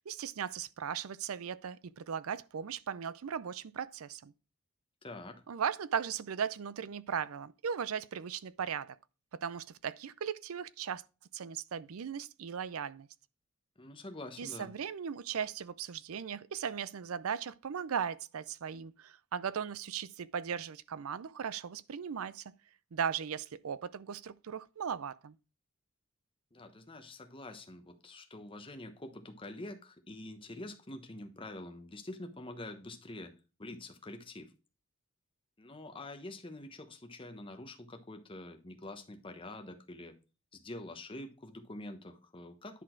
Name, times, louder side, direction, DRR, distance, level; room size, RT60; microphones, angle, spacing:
voice 1, 0.0-4.3 5.5-9.0 9.3-11.1 11.3-13.1 14.4-22.5 22.9-25.4, right 7 dB, 80° right, 0.5 m, -37 dB
voice 2, 5.0-5.4 13.8-14.7 26.5-33.3 33.6-34.5 35.6-40.1 40.5-42.8, left 1 dB, 25° left, 1.0 m, -46 dB
10.0 x 4.2 x 4.5 m
head